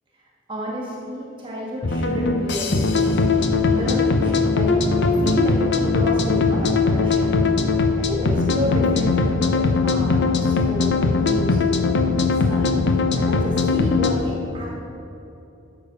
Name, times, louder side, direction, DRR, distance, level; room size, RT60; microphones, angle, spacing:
voice 1, 0.5-4.8 5.2-7.4 7.9-11.8 12.4-12.8 13.2-14.7, equal, 25° right, -3 dB, 2.0 m, -31 dB
sound 1, 1.8-14.1, left 3 dB, 60° left, 0.8 m, -20 dB
12.5 x 7.0 x 5.5 m, 2.9 s
head